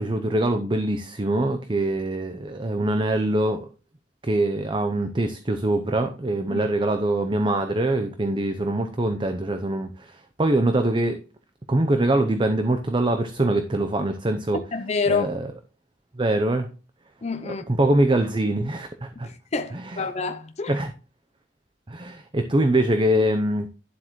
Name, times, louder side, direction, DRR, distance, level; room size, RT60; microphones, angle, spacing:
voice 1, 0.0-3.7 4.2-11.2 11.7-14.6 15.1-15.5 16.2-16.7 17.7-19.3 19.7-20.0 20.7-20.9 21.9-23.7, right 1 dB, 25° right, 0.7 m, -23 dB
voice 2, 14.7-15.3 17.2-17.6 19.2-20.7, left 4 dB, 35° left, 0.6 m, -27 dB
11.5 x 7.5 x 3.1 m
head